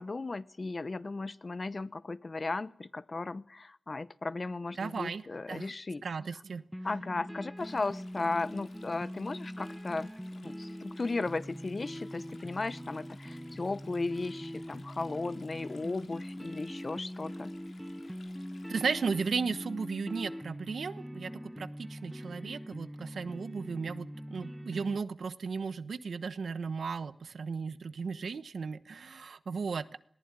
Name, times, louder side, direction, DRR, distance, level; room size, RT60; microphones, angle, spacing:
voice 1, 0.0-6.0 6.8-17.5, left 3 dB, 40° left, 16 dB, 0.9 m, -36 dB
voice 2, 4.8-5.7 6.0-6.6 18.7-30.0, right 5 dB, 85° right, 13 dB, 1.1 m, -35 dB
sound 1, 6.7-25.0, equal, 5° right, 1.1 m, -43 dB
Stream, 7.6-19.2, left 4 dB, 85° left, 3.8 m, -60 dB
20.5 x 19.0 x 9.5 m, 0.66 s
wide cardioid pair, 115°, 0 cm